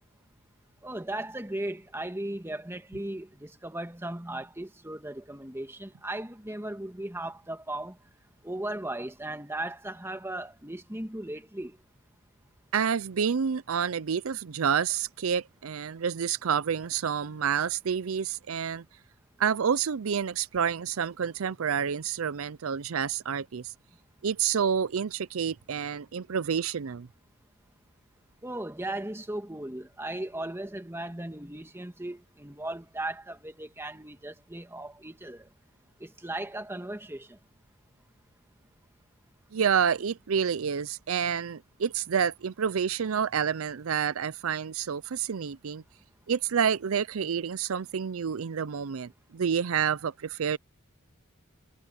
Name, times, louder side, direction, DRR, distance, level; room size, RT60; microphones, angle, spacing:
voice 1, 0.8-8.0 8.4-11.8 28.4-35.5 36.0-37.4, right 1 dB, 10° right, 1.8 m, -37 dB
voice 2, 12.7-18.8 19.4-23.7 24.2-27.1 39.5-45.8 46.3-50.6, right 7 dB, 80° right, 0.5 m, -28 dB
head